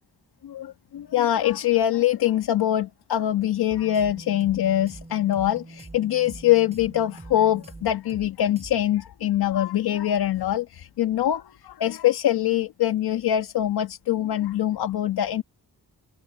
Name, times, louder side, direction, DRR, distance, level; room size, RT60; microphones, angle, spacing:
voice 1, 0.4-15.4, left 12 dB, 90° left, 1.6 m, -23 dB
sound 1, 3.7-8.3 8.6-8.7, right 2 dB, 15° right, 7.3 m, -43 dB
wide cardioid pair, 150°, 37 cm